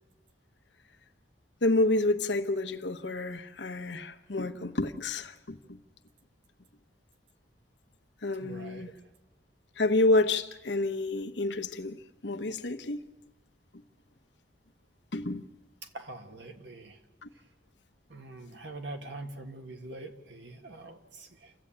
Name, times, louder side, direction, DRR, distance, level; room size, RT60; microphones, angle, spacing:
voice 1, 1.6-5.8 8.2-8.9 9.8-13.0 15.1-15.4 17.2-17.3, left 2 dB, 80° left, 6 dB, 1.1 m, -29 dB
voice 2, 8.4-8.9 15.8-17.0 18.1-21.5, right 2 dB, 85° right, 5 dB, 1.7 m, -44 dB
28.5 x 14.0 x 8.7 m, 1.2 s
head